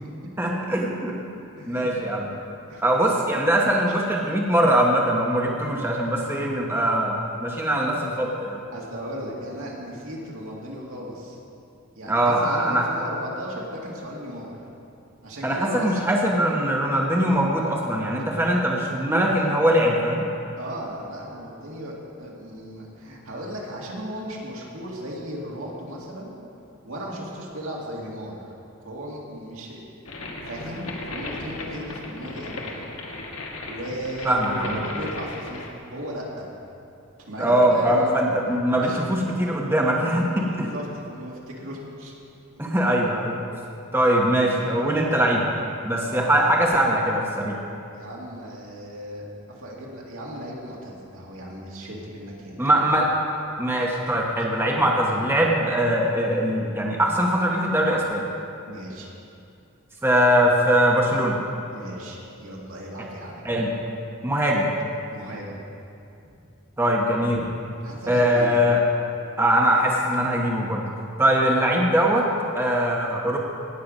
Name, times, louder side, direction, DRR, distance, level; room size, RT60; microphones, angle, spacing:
voice 1, 0.4-1.2 1.7-2.3 2.8-8.6 12.1-12.8 15.4-20.3 34.2-34.8 37.4-40.7 42.6-43.4 43.9-45.5 45.8-47.6 52.6-53.1 53.6-58.3 60.0-61.4 63.4-63.7 64.2-64.7 66.8-67.5 68.1-68.8 69.4-70.9 71.2-72.3 72.5-73.4, right 1 dB, 10° right, -2 dB, 0.9 m, -21 dB
voice 2, 1.6-1.9 2.7-3.1 8.7-11.4 12.0-14.5 15.2-16.0 20.6-26.3 26.8-28.5 28.8-29.8 30.4-33.2 33.6-36.5 37.3-38.3 38.8-39.1 40.4-42.1 42.6-42.7 46.0-46.5 47.9-52.6 58.7-59.1 61.7-63.4 65.1-65.6 66.2-66.4 67.8-68.6, equal, 75° right, -3 dB, 2.3 m, -36 dB
sound 1, 30.1-35.7, left 2 dB, 80° left, 1.4 m, -36 dB
17.5 x 6.7 x 5.3 m, 2.6 s
head